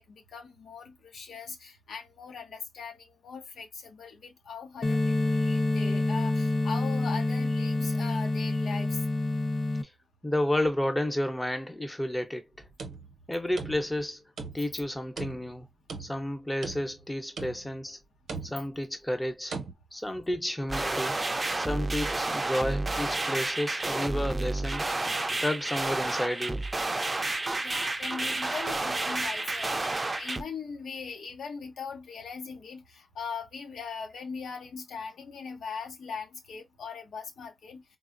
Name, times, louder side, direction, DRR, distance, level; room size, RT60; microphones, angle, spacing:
voice 1, 0.0-9.0 27.6-37.8, left 5 dB, 90° left, 0.8 m, -40 dB
sound 1, 4.8-9.8, left 2 dB, 45° left, 0.6 m, -27 dB
voice 2, 10.2-12.4 13.3-14.2 14.5-15.7 16.0-18.0 18.4-19.5 19.9-21.2 21.5-24.9 25.4-26.6, left 1 dB, 15° left, 0.8 m, -31 dB
sound 2, 12.6-14.1 14.4-14.8 15.2-16.3 16.6-17.1 17.4-17.8 18.3-18.8 19.5-19.7, right 4 dB, 90° right, 0.7 m, -40 dB
sound 3, 20.7-30.4, right 2 dB, 30° right, 0.5 m, -30 dB
3.8 x 2.0 x 2.5 m
cardioid pair, 70°, 0 cm